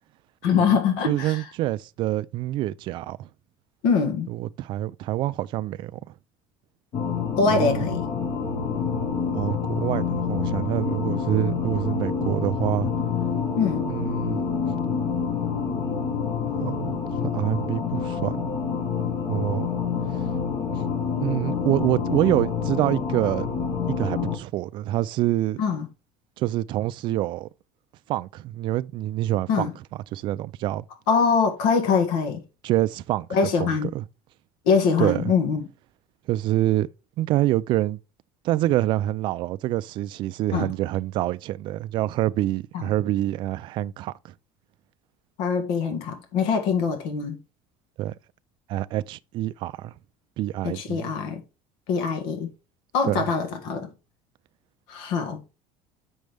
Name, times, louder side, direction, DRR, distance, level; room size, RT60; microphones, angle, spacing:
voice 1, 0.4-1.4 3.8-4.3 7.4-8.0 13.6-13.9 25.6-25.9 29.5-29.7 31.1-32.4 33.3-33.9 34.6-35.6 40.5-40.7 42.7-42.9 45.4-47.4 50.6-51.4 51.9-52.5 52.9-53.9 54.9-55.4, left 5 dB, 75° left, 1.6 m, -23 dB
voice 2, 1.1-3.3 4.3-6.1 7.5-7.8 9.3-12.9 13.9-14.4 16.6-17.0 17.3-18.5 19.3-19.7 21.2-23.5 23.9-25.6 26.4-27.5 28.1-29.7 30.1-30.9 32.6-33.3 33.6-34.0 35.0-35.2 36.3-36.9 37.2-38.0 38.4-44.3 48.0-48.1 48.7-49.9 50.4-51.1 53.1-53.2, right 14 dB, 45° right, 0.4 m, -26 dB
sound 1, 6.9-24.4, left 6 dB, 40° left, 1.5 m, -27 dB
7.7 x 6.2 x 3.4 m
cardioid pair, 170°, 11 cm